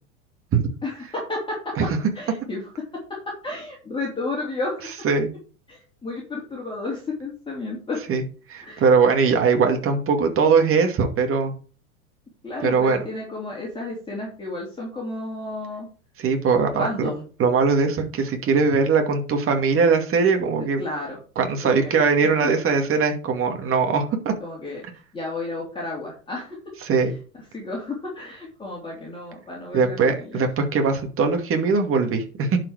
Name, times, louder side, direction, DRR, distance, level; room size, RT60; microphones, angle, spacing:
voice 1, 0.8-1.8 2.1-2.7 3.1-5.1 5.7-8.0 8.6-8.8 12.4-15.9 16.7-17.3 20.8-21.2 21.6-22.0 22.4-22.5 24.4-24.8 25.1-26.6 27.5-30.5, left 2 dB, 10° left, -4 dB, 3.4 m, -32 dB
voice 2, 8.5-11.5 12.6-13.0 16.2-17.1 17.4-20.8 21.4-24.3 26.8-27.1 29.7-32.6, right 5 dB, 30° right, 5 dB, 2.4 m, -20 dB
11.0 x 5.2 x 4.9 m, 0.39 s
hypercardioid pair, 90°, 41 cm